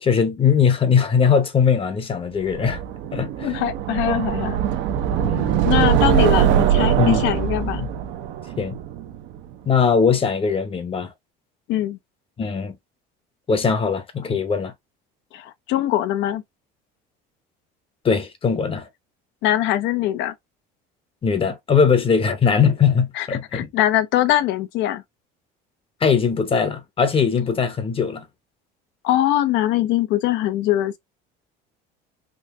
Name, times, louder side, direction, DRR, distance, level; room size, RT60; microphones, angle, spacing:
voice 1, 0.0-2.8 3.1-3.6 5.2-5.5 6.1-6.3 7.0-7.2 7.8-7.9 8.6-8.8 9.7-11.1 12.4-12.8 13.5-14.7 18.0-18.9 21.2-23.7 26.0-28.2, left 6 dB, 25° left, 0.8 m, -20 dB
sound 1, 2.5-9.5, right 10 dB, 65° right, 0.7 m, -22 dB
voice 2, 3.4-4.6 5.6-7.9 11.7-12.0 15.3-16.4 19.4-20.3 23.2-23.3 23.5-25.0 29.0-31.0, left 13 dB, 65° left, 0.7 m, -22 dB
3.8 x 2.7 x 2.5 m
cardioid pair, 120°, 20 cm